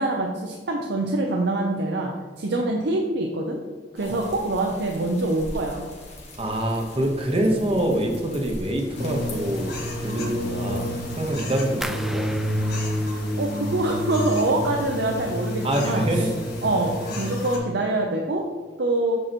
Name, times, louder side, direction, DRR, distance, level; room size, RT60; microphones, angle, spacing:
voice 1, 0.0-3.6 3.9-5.9 13.4-16.3 16.6-18.5 18.8-19.2, right 2 dB, 70° right, 1 dB, 0.7 m, -25 dB
sound 1, 3.9-11.3, left 1 dB, 40° left, 1.5 m, -42 dB
voice 2, 6.4-12.4 15.6-16.3 17.1-17.2, right 1 dB, 30° right, 2 dB, 1.0 m, -25 dB
sound 2, 9.0-17.6, equal, 60° left, 1.6 m, -29 dB
sound 3, 11.8-14.7 15.0-15.7 16.0-16.4 16.9-17.0, equal, ahead, 0.3 m, -39 dB
7.9 x 6.4 x 3.0 m, 1.4 s
head